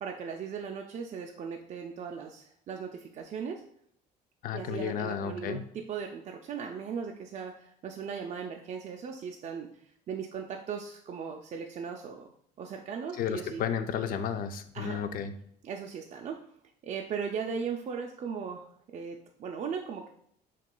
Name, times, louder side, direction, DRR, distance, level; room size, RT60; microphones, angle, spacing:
voice 1, 0.0-3.6 4.5-9.7 10.1-12.3 12.6-13.6 14.7-15.0 15.6-16.4 16.8-20.1, right 6 dB, 45° right, 1 dB, 0.4 m, -38 dB
voice 2, 4.4-5.6 13.2-15.3, left 8 dB, 55° left, 9 dB, 0.4 m, -32 dB
5.9 x 2.4 x 2.2 m, 0.68 s
cardioid pair, 110°, 17 cm